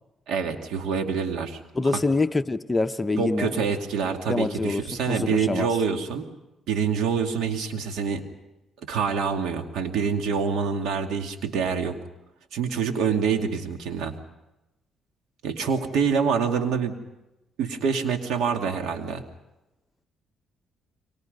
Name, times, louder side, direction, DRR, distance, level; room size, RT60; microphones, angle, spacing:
voice 1, 0.3-1.6 1.9-2.0 3.2-6.3 6.7-8.2 8.9-11.9 12.5-14.1 15.4-17.0 17.6-19.2, right 6 dB, 80° right, 5 dB, 2.4 m, -26 dB
voice 2, 1.7-3.5 4.3-5.7, left 3 dB, 20° left, 9 dB, 0.9 m, -25 dB
30.0 x 24.0 x 5.5 m, 0.97 s
cardioid pair, 90°, 0 cm